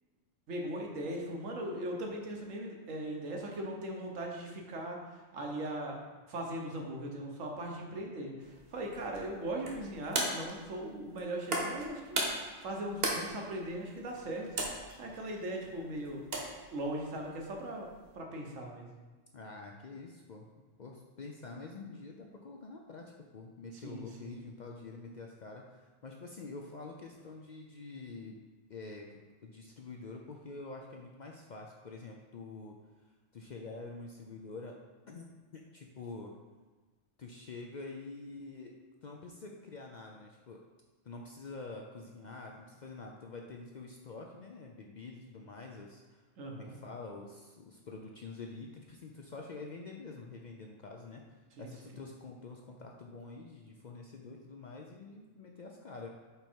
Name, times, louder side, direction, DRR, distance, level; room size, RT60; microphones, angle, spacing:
voice 1, 0.5-6.0 6.3-14.5 14.7-16.2 16.7-17.9 18.1-18.9 23.7-24.4 46.4-46.8 51.6-51.9, right 1 dB, 80° right, 0 dB, 1.4 m, -39 dB
sound 1, 8.4-18.2, right 2 dB, 55° right, 1.2 m, -39 dB
voice 2, 19.3-28.4 28.7-32.8 33.3-34.8 35.1-35.3 35.5-36.3 37.2-38.7 39.0-40.6 41.0-46.2 46.5-51.2 51.6-56.1, left 3 dB, 60° left, 1 dB, 0.4 m, -47 dB
5.2 x 4.5 x 4.4 m, 1.3 s
omnidirectional pair, 1.3 m